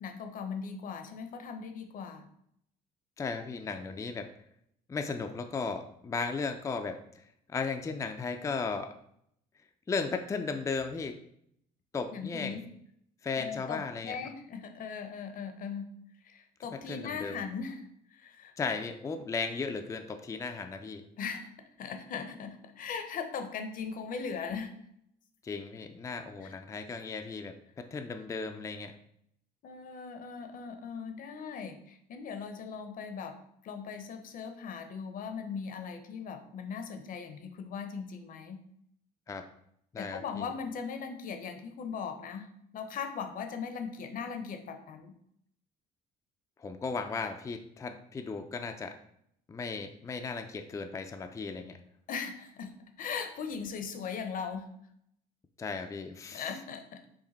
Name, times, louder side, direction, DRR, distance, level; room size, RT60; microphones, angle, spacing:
voice 1, 0.0-2.3 12.1-12.6 13.3-16.0 16.2-17.8 18.1-18.5 21.2-21.5 21.8-24.7 26.4-26.6 29.6-33.3 33.6-38.6 40.0-45.1 52.1-54.7 56.3-57.1, left 6 dB, 55° left, 6 dB, 0.7 m, -39 dB
voice 2, 3.2-4.3 4.9-7.2 7.5-8.9 9.9-11.2 11.9-12.6 13.2-14.2 16.9-17.4 18.6-21.0 25.4-28.9 39.3-39.4 39.9-40.5 46.6-48.9 49.5-51.8 55.6-56.5, left 4 dB, 20° left, 6 dB, 0.4 m, -36 dB
4.9 x 2.6 x 4.1 m, 0.71 s
cardioid pair, 110°, 17 cm